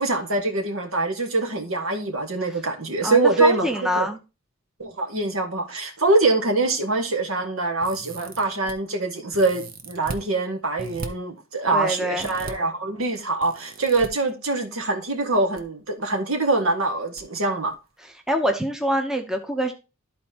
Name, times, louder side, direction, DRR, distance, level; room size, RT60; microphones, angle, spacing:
voice 1, 0.0-4.1 4.8-17.7, right 3 dB, 80° right, 1.7 m, -24 dB
voice 2, 3.0-4.2 11.7-12.3 18.3-19.7, equal, 5° right, 0.7 m, -24 dB
sound 1, 7.8-8.7 9.3-10.2 10.8-11.1 12.2-12.5 13.4-14.1 15.2-15.6 15.9-16.0 17.2-17.3 17.6-17.8, right 3 dB, 45° right, 0.9 m, -37 dB
13.0 x 4.3 x 2.8 m
head